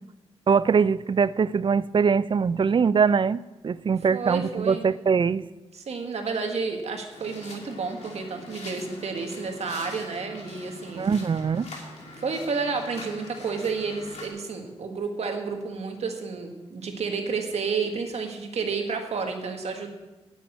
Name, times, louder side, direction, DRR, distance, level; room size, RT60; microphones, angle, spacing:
voice 1, 0.5-5.5 11.0-11.7, right 6 dB, 45° right, 18 dB, 0.4 m, -22 dB
voice 2, 4.1-4.8 5.7-11.1 12.2-19.9, right 4 dB, 75° right, 4 dB, 1.7 m, -31 dB
sound 1, 7.1-14.3, left 2 dB, 85° left, 2.7 m, -43 dB
8.6 x 8.2 x 9.1 m, 1.1 s
wide cardioid pair, 95°, 11 cm